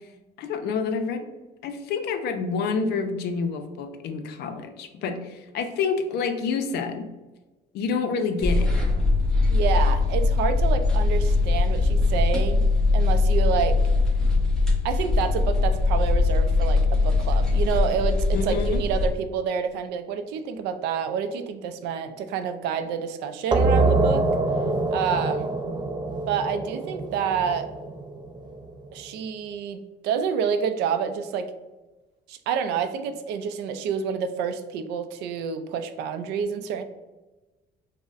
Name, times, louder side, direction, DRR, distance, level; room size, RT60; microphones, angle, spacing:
voice 1, 0.4-1.3 1.6-7.1 7.7-8.7 18.3-18.8, left 5 dB, 75° left, 7 dB, 0.5 m, -28 dB
sound 1, 8.4-19.1, left 3 dB, 5° left, 0.8 m, -21 dB
voice 2, 9.5-12.7 12.9-13.8 14.8-24.3 24.9-25.5 26.3-27.7 28.9-31.5 32.3-36.8, right 7 dB, 90° right, 8 dB, 0.4 m, -28 dB
sound 2, 23.5-28.8, right 3 dB, 25° right, 0.4 m, -25 dB
5.1 x 2.1 x 2.4 m, 1.1 s
cardioid pair, 110°, 17 cm